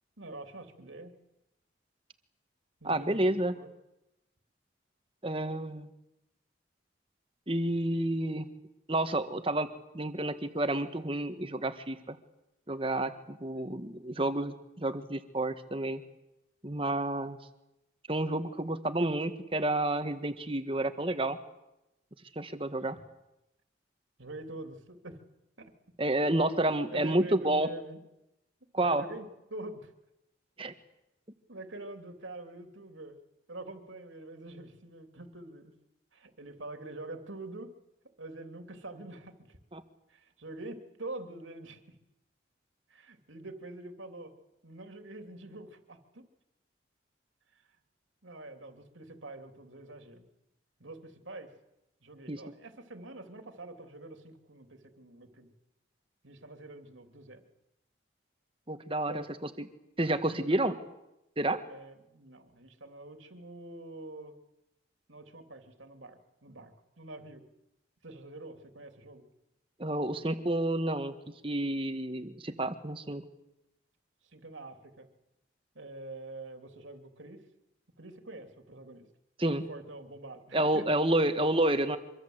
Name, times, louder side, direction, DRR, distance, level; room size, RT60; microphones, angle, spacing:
voice 1, 0.2-1.1 2.8-3.7 24.2-25.2 25.6-25.7 26.7-28.0 28.8-29.9 31.5-33.2 33.5-35.7 36.1-37.7 38.2-39.6 40.1-41.8 42.9-44.3 44.6-46.3 48.2-50.2 50.8-51.5 52.0-55.5 56.2-57.4 59.0-59.3 60.3-60.8 61.7-64.4 65.1-67.4 68.0-69.2 74.2-75.1 75.7-77.5 78.0-79.1 79.7-80.9 81.1-81.3, right 2 dB, 90° right, 6 dB, 3.1 m, -45 dB
voice 2, 2.8-3.5 5.2-5.9 7.5-8.5 8.9-9.7 9.9-12.2 12.7-16.0 16.6-17.4 18.1-21.4 22.3-23.0 26.0-27.7 28.7-29.0 30.6-30.7 39.7-39.8 52.3-52.4 58.7-59.2 60.0-60.7 61.4-61.6 69.8-71.1 71.4-73.2 79.4-79.6 80.5-82.0, right 1 dB, 30° right, 9 dB, 1.5 m, -30 dB
25.0 x 23.0 x 8.1 m, 0.91 s
head